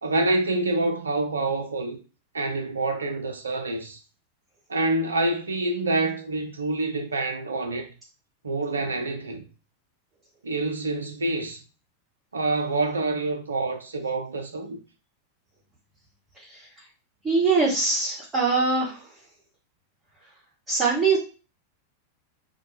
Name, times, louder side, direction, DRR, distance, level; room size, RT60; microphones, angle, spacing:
voice 1, 0.0-2.0 2.3-4.0 4.7-7.9 8.4-9.4 10.4-11.6 12.3-14.8, right 2 dB, 75° right, 0.6 m, -27 dB
voice 2, 17.2-19.0 20.7-21.2, right 4 dB, 20° right, 1.0 m, -22 dB
2.6 x 2.2 x 2.7 m
figure-of-eight pair, 90°, 0 cm